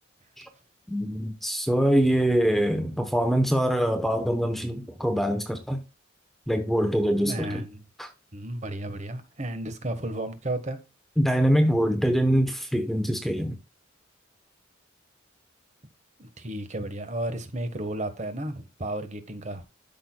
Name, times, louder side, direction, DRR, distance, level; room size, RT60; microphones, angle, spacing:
voice 1, 0.9-5.8 6.5-7.6 8.0-8.1 11.2-13.6, equal, ahead, 0.9 m, -24 dB
voice 2, 7.3-7.8 8.3-10.8 16.2-19.6, right 1 dB, 35° right, 1.3 m, -33 dB
12.5 x 6.2 x 2.3 m
head